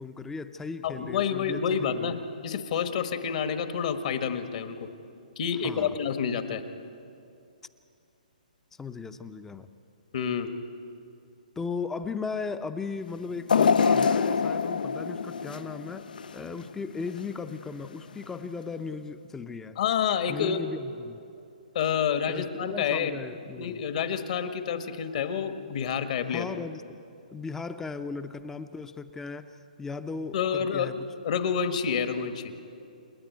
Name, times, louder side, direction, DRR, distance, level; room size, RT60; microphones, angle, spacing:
voice 1, 0.0-2.2 5.6-5.9 8.8-9.7 11.6-19.8 20.3-21.2 22.3-23.9 26.3-26.8 27.3-31.1, left 4 dB, 10° left, 11 dB, 0.6 m, -37 dB
voice 2, 0.8-4.9 5.4-6.6 10.1-10.5 19.8-20.6 21.7-23.1 23.6-26.5 30.3-32.5, left 7 dB, 55° left, 8 dB, 1.5 m, -28 dB
sound 1, 13.5-16.6 17.1-17.2 18.2-18.3, left 6 dB, 75° left, 0.5 m, -25 dB
28.5 x 9.8 x 9.4 m, 2.6 s
hypercardioid pair, 145°, 5 cm